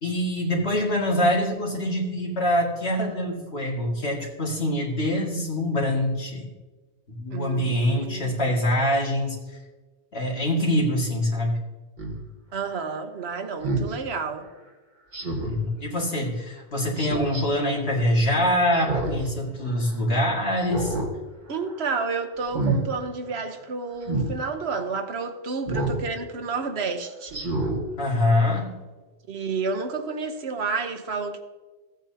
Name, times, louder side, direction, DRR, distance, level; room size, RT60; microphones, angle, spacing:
voice 1, 0.0-6.5 7.2-9.6 10.1-11.6 15.4-20.9 28.0-28.7, left 1 dB, 75° left, -2 dB, 2.4 m, -24 dB
voice 2, 7.3-8.4 12.5-14.5 21.5-27.4 29.3-31.4, right 4 dB, 80° right, 7 dB, 1.2 m, -30 dB
Speech synthesizer, 12.0-12.2 13.6-13.9 15.1-15.6 17.0-17.4 18.7-19.3 19.7-19.8 20.6-21.1 21.5-21.8 22.4-22.8 24.0-24.3 25.7-26.0 26.5-26.6 27.3-27.8 28.3-28.4, right 2 dB, 45° right, 1.8 m, -27 dB
15.0 x 8.8 x 2.8 m, 1.3 s
omnidirectional pair, 1.1 m